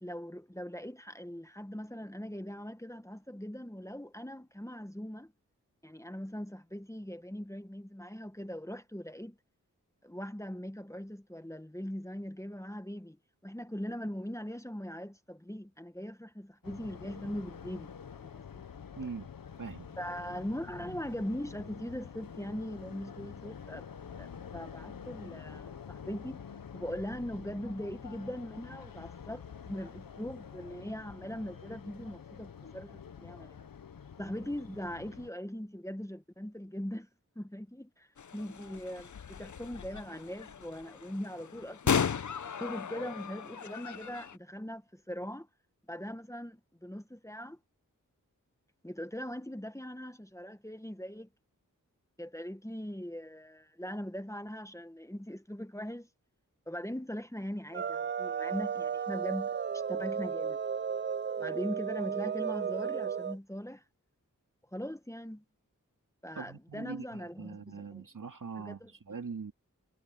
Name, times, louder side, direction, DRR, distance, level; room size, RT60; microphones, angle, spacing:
voice 1, 0.0-5.3 5.8-9.4 10.0-13.2 13.4-18.6 20.0-23.9 24.2-26.4 26.7-33.6 34.2-37.1 37.3-38.1 38.3-42.1 42.6-45.5 45.9-47.6 48.8-51.3 52.2-56.1 56.7-59.5 59.9-60.6 61.4-63.8 64.7-65.4 66.2-68.0 68.6-68.9, equal, 10° left, 1.5 m, -40 dB
sound 1, 16.6-35.3, left 7 dB, 85° left, 1.0 m, -47 dB
voice 2, 19.0-19.3 19.6-19.9 66.3-69.5, right 5 dB, 70° right, 2.4 m, -42 dB
sound 2, 38.2-44.4, left 7 dB, 60° left, 0.7 m, -36 dB
sound 3, 57.7-63.4, right 7 dB, 35° right, 0.4 m, -34 dB
cardioid pair, 40°, 33 cm